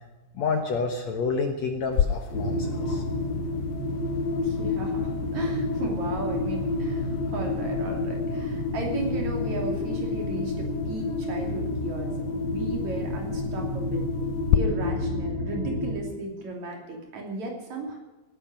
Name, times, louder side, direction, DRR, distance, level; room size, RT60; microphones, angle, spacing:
voice 1, 0.3-3.0, left 4 dB, 60° left, 4 dB, 2.1 m, -29 dB
sound 1, 1.9-14.6, left 10 dB, 80° left, 1.7 m, -34 dB
sound 2, 2.3-15.9, left 2 dB, 30° left, 4.7 m, -29 dB
voice 2, 4.4-14.1 14.5-18.0, right 3 dB, 50° right, 1 dB, 4.0 m, -35 dB
18.0 x 11.0 x 6.2 m, 1.1 s
omnidirectional pair, 4.2 m